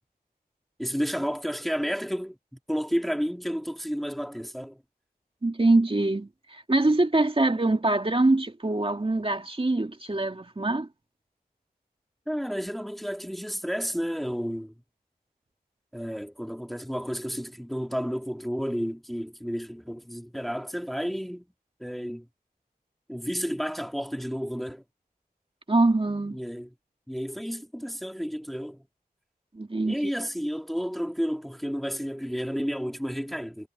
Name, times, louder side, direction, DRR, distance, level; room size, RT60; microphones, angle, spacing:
voice 1, 0.8-4.8 12.3-14.7 15.9-21.5 21.8-22.3 23.1-24.8 26.3-26.7 27.1-28.9 29.8-33.7, equal, ahead, 2.5 m, -31 dB
voice 2, 5.4-10.9 25.7-26.4 29.5-30.0, right 2 dB, 35° right, 2.3 m, -24 dB
wide cardioid pair, 55°, 16 cm